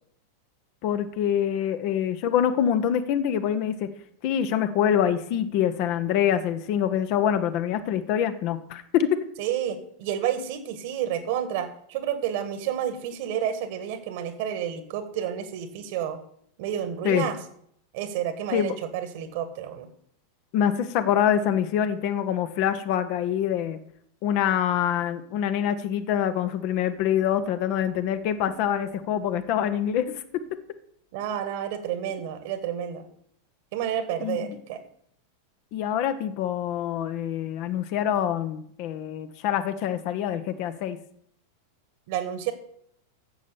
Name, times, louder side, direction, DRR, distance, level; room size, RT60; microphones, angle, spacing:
voice 1, 0.8-3.9 4.2-9.2 17.0-17.3 18.5-18.8 20.5-23.8 24.2-30.6 34.2-34.6 35.7-41.0, left 9 dB, 45° left, 10 dB, 0.9 m, -25 dB
voice 2, 9.4-16.2 16.6-17.4 17.9-19.9 31.1-33.1 33.7-34.8 42.1-42.5, right 10 dB, 50° right, 10 dB, 1.6 m, -30 dB
10.5 x 7.5 x 6.9 m, 0.68 s
figure-of-eight pair, 90°, 0 cm